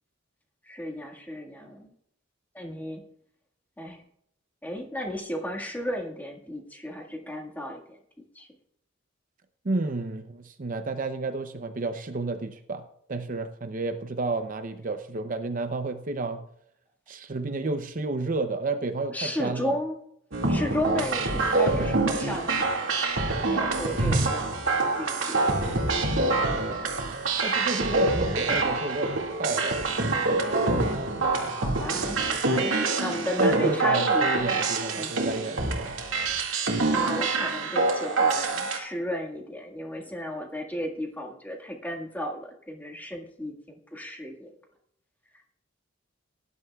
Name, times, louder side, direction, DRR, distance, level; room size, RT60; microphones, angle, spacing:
voice 1, 0.6-1.9 2.5-3.0 3.8-4.0 4.6-8.0 8.4-8.5 19.1-20.0 20.5-23.1 23.5-25.8 31.5-34.3 35.0-35.2 36.9-44.5, equal, 10° left, 1 dB, 1.7 m, -34 dB
voice 2, 9.6-12.8 13.1-16.4 17.1-19.8 27.4-29.1 29.4-30.6 33.4-35.9, right 3 dB, 45° right, 8 dB, 0.6 m, -31 dB
sound 1, 20.3-38.8, right 3 dB, 80° right, 2.1 m, -26 dB
18.5 x 11.0 x 2.3 m, 0.71 s
head